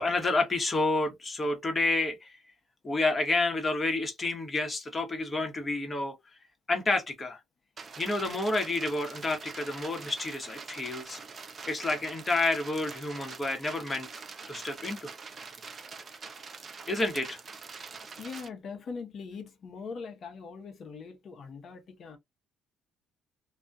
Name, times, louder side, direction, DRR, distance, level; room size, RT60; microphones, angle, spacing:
voice 1, 0.0-2.4 2.8-6.1 6.7-7.4 8.0-11.2 11.7-14.1 14.5-15.1 16.9-17.4, left 2 dB, 25° left, 1.0 m, -29 dB
sound 1, 7.8-18.5, right 5 dB, 40° right, 0.5 m, -44 dB
voice 2, 18.2-22.2, left 5 dB, 55° left, 0.8 m, -41 dB
2.3 x 2.2 x 2.5 m
cardioid pair, 100°, 0 cm